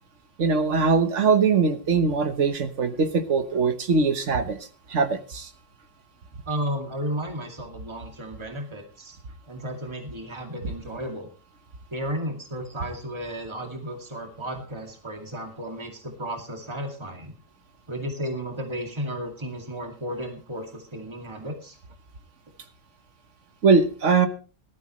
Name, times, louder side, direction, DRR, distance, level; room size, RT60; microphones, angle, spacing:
voice 1, 0.4-4.6 4.9-5.5 23.6-24.3, right 4 dB, 70° right, 9 dB, 1.6 m, -21 dB
voice 2, 6.5-9.2 9.5-11.3 11.9-17.3 17.9-21.8, equal, 20° right, 3 dB, 2.3 m, -33 dB
17.5 x 13.5 x 3.1 m, 0.35 s
omnidirectional pair, 1.3 m